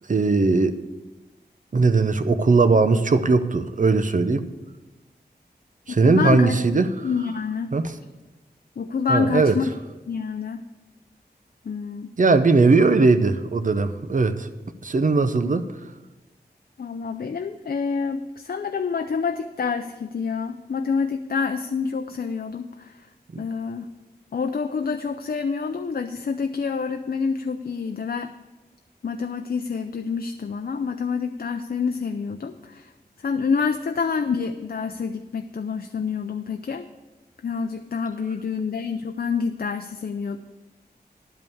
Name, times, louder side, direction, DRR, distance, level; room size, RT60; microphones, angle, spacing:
voice 1, 0.1-0.8 1.7-4.4 5.9-6.9 7.7-7.9 9.1-9.5 12.2-14.5 14.8-15.7 23.3-23.4, right 3 dB, 50° right, 10 dB, 0.7 m, -19 dB
voice 2, 6.0-6.6 7.0-7.7 8.8-9.7 10.1-10.6 11.6-12.1 16.8-23.1 23.4-23.9 24.3-28.3 29.0-32.9 33.2-36.9 37.4-40.4, left 5 dB, 60° left, 7 dB, 0.5 m, -27 dB
11.0 x 5.4 x 7.2 m, 1.1 s
wide cardioid pair, 85°, 17 cm